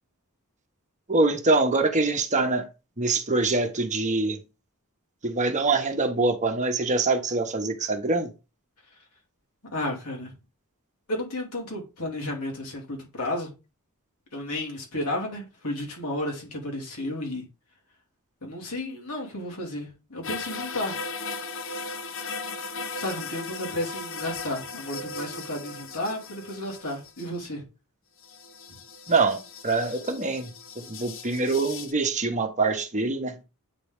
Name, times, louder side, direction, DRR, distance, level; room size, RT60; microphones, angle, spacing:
voice 1, 1.1-2.7 3.0-4.4 5.2-8.3 29.1-33.4, right 3 dB, 35° right, 1.0 m, -24 dB
voice 2, 9.7-10.3 11.1-13.5 14.3-17.5 18.4-21.0 22.9-27.6, left 1 dB, 85° left, 2.7 m, -32 dB
sound 1, 20.2-27.4 28.2-31.9, left 4 dB, 60° left, 0.8 m, -37 dB
8.7 x 3.8 x 3.5 m
head